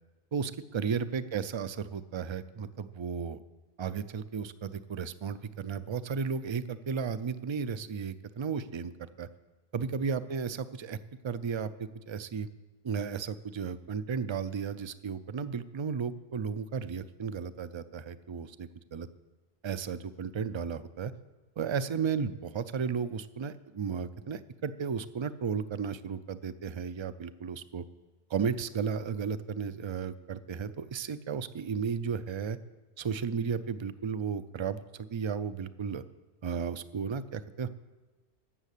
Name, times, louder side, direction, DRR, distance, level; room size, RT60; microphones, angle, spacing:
voice 1, 0.3-3.4 3.8-8.9 9.2-9.3 9.7-11.0 11.2-12.5 12.8-19.1 19.6-21.1 21.6-27.8 28.3-32.6 33.0-36.0 36.4-37.7, right 6 dB, 45° right, 13 dB, 0.3 m, -34 dB
14.5 x 6.4 x 8.3 m, 1.2 s
omnidirectional pair, 1.1 m